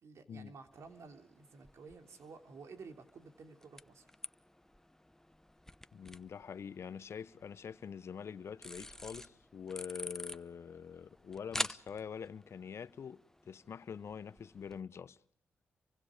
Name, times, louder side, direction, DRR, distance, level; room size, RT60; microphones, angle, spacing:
voice 1, 0.0-4.1, right 4 dB, 70° right, 3.2 m, -53 dB
sound 1, 0.7-14.8, left 1 dB, 10° left, 0.9 m, -48 dB
voice 2, 5.9-15.2, left 7 dB, 65° left, 0.9 m, -45 dB
29.5 x 24.5 x 5.0 m
supercardioid pair, 40°, 5 cm